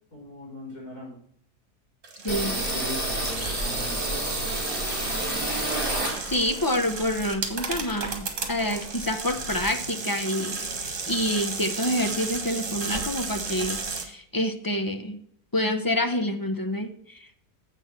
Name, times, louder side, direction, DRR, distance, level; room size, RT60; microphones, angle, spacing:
voice 1, 0.1-1.2 2.2-5.2, left 1 dB, 90° left, -3 dB, 5.2 m, -40 dB
sound 1, 2.0-14.0, right 4 dB, 55° right, 1.8 m, -34 dB
sound 2, 2.3-6.6 7.0-8.3 8.6-8.7 9.0-9.7, right 1 dB, 25° right, 4.1 m, -30 dB
voice 2, 6.2-15.2 15.5-17.4, left 1 dB, 20° left, 6 dB, 0.5 m, -28 dB
7.9 x 6.3 x 6.0 m, 0.64 s
omnidirectional pair, 1.6 m